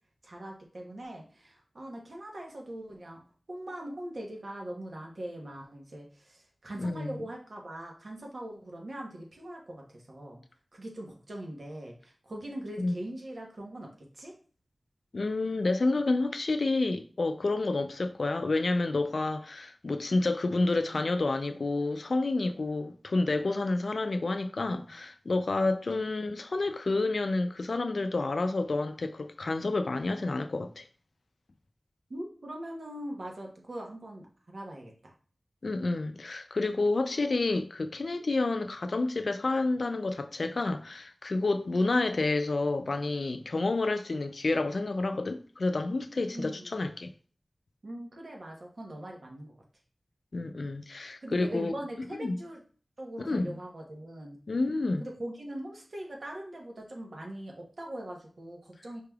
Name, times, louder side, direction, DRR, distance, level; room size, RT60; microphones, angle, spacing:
voice 1, 0.2-3.2 3.5-10.4 10.7-14.3 26.0-26.1 32.1-35.1 46.3-46.9 47.8-49.5 51.2-52.6 53.0-54.4 55.0-59.0, right 1 dB, 65° right, 0.9 m, -41 dB
voice 2, 15.1-30.9 35.6-47.1 50.3-51.7 52.2-52.4 53.3-53.6 54.5-55.0, left 2 dB, 70° left, 0.4 m, -29 dB
4.7 x 3.3 x 2.3 m
wide cardioid pair, 65°, 0 cm